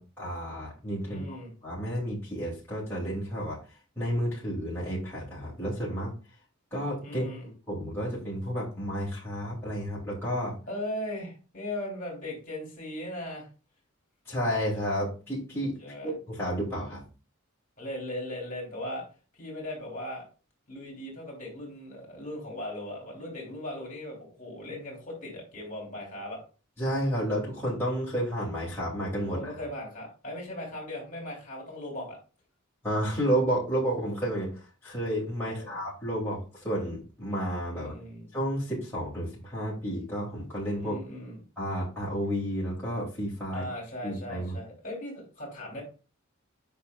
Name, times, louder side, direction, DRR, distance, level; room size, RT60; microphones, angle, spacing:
voice 1, 0.0-3.6 4.0-6.1 6.7-7.3 7.7-10.6 14.3-15.7 16.0-17.0 26.8-29.5 32.8-37.9 38.3-41.0 41.6-43.7 44.0-44.6, equal, 10° left, -8 dB, 2.6 m, -31 dB
voice 2, 1.0-1.5 7.0-7.5 10.7-13.5 15.8-16.1 17.8-19.0 19.3-20.2 20.7-26.4 29.2-32.2 35.4-35.8 37.7-38.3 40.8-41.4 43.5-45.8, left 1 dB, 40° left, -1 dB, 3.0 m, -38 dB
8.1 x 5.3 x 2.4 m, 0.34 s
head